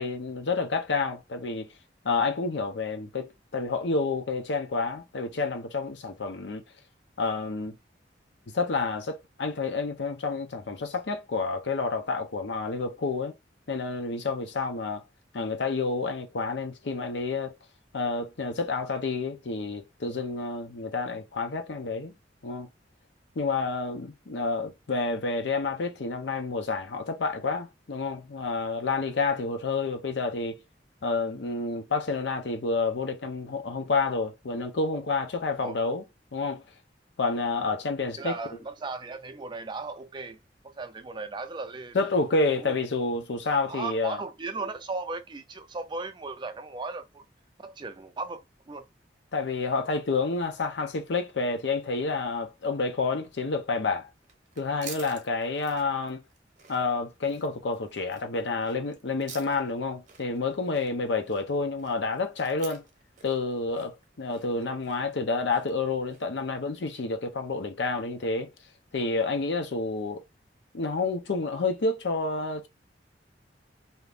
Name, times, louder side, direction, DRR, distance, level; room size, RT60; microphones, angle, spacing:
voice 1, 0.0-1.7 2.0-6.6 7.2-7.8 8.5-13.3 13.7-15.0 15.3-17.5 17.9-22.1 22.4-22.7 23.4-30.6 31.0-36.0 36.3-36.6 37.2-38.4 41.9-44.2 49.3-54.1 54.6-56.2 56.7-62.8 63.2-68.5 68.9-70.2 70.7-72.7, left 3 dB, 70° left, 0.6 m, -29 dB
voice 2, 38.2-40.4 40.6-42.0 42.6-42.8 43.7-47.2 47.6-48.4 48.7-48.8, right 3 dB, 25° right, 0.4 m, -36 dB
sound 1, 54.2-66.4, right 6 dB, 45° right, 0.8 m, -50 dB
2.8 x 2.5 x 3.3 m
head